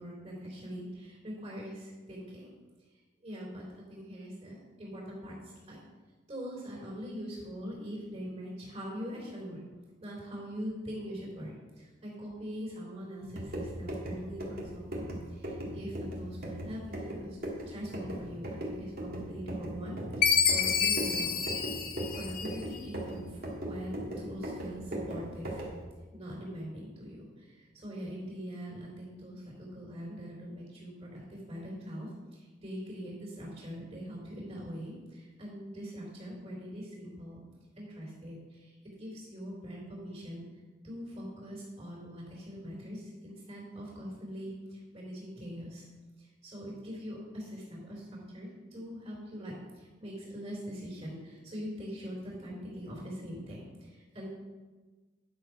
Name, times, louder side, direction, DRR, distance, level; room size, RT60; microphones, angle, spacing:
voice 1, 0.0-2.5 3.2-5.8 6.3-9.6 10.0-17.4 17.7-21.8 22.1-25.6 26.1-37.4 37.8-40.5 40.8-45.8 46.2-54.3, equal, 35° right, -4 dB, 3.5 m, -42 dB
Pounding Tire, 13.2-25.8, right 1 dB, 55° right, 2.1 m, -39 dB
Chime, 20.2-22.8, left 7 dB, 50° left, 0.7 m, -28 dB
10.5 x 6.5 x 4.7 m, 1.3 s
head